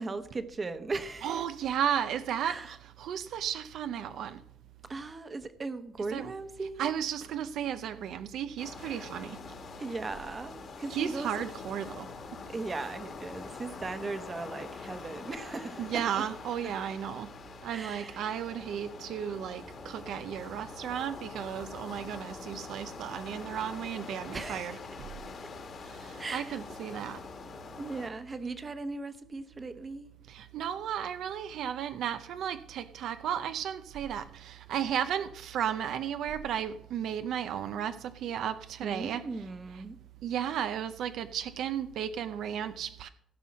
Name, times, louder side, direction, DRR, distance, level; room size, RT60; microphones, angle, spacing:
voice 1, 0.0-1.4 2.4-2.7 4.9-6.9 8.8-9.1 9.8-11.3 12.5-16.2 17.7-18.2 24.3-24.8 26.2-26.6 27.8-30.1 38.8-40.0, right 3 dB, 25° right, 1.0 m, -38 dB
voice 2, 1.2-4.4 6.1-6.3 6.8-9.4 10.9-12.1 15.8-17.3 17.6-24.8 25.9-27.2 30.3-39.2 40.2-43.1, right 9 dB, 70° right, 0.6 m, -34 dB
sound 1, 8.6-28.1, left 4 dB, 45° left, 1.7 m, -45 dB
15.5 x 5.5 x 6.2 m
cardioid pair, 135°, 0 cm